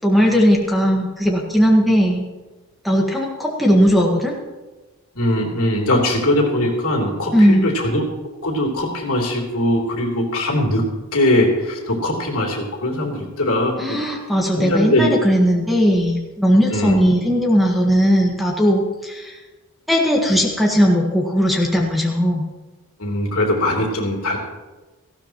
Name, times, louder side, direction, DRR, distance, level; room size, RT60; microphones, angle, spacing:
voice 1, 0.0-2.3 2.8-4.3 7.3-7.7 13.8-19.3 19.9-22.4, equal, ahead, -1 dB, 1.5 m, -17 dB
voice 2, 5.1-8.0 8.4-10.8 11.1-14.0 14.6-15.1 16.7-17.0 23.0-24.4, left 1 dB, 75° left, -1 dB, 3.3 m, -20 dB
18.5 x 15.5 x 3.1 m, 1.2 s
head